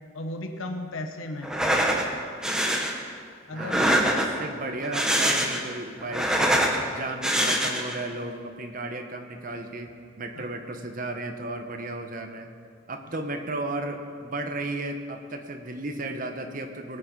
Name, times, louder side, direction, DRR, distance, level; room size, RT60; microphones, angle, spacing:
voice 1, 0.1-1.5 3.5-4.0 10.4-10.5, left 1 dB, 75° left, 5 dB, 1.0 m, -35 dB
sound 1, 1.4-2.1 2.4-2.9 3.6-4.4 4.8-5.7 6.0-6.8 7.2-8.0, right 1 dB, 5° right, 1.0 m, -24 dB
voice 2, 3.5-12.5 12.9-17.0, right 2 dB, 40° right, 5 dB, 1.1 m, -34 dB
19.5 x 8.8 x 5.3 m, 2.1 s
head